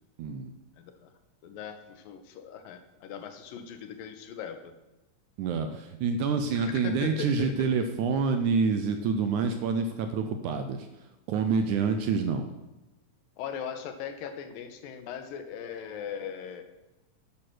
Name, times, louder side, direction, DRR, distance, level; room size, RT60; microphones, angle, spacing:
voice 1, 0.2-0.5 5.4-12.5, right 5 dB, 75° right, 7 dB, 1.9 m, -27 dB
voice 2, 0.8-1.1 1.4-4.7 6.5-7.9 13.4-16.6, left 8 dB, 80° left, 8 dB, 2.7 m, -39 dB
10.0 x 9.0 x 6.1 m, 1.0 s
omnidirectional pair, 4.1 m